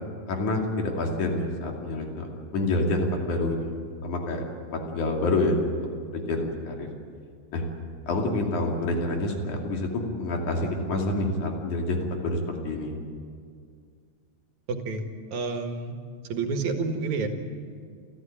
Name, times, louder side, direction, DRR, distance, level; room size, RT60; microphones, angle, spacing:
voice 1, 0.3-2.3 2.5-4.4 4.7-5.8 6.1-6.9 7.5-7.6 8.1-12.9, left 2 dB, 80° left, 1 dB, 4.1 m, -27 dB
voice 2, 14.7-15.9 16.3-17.3, right 4 dB, 70° right, 5 dB, 3.1 m, -29 dB
29.0 x 14.5 x 8.8 m, 2.2 s
omnidirectional pair, 3.5 m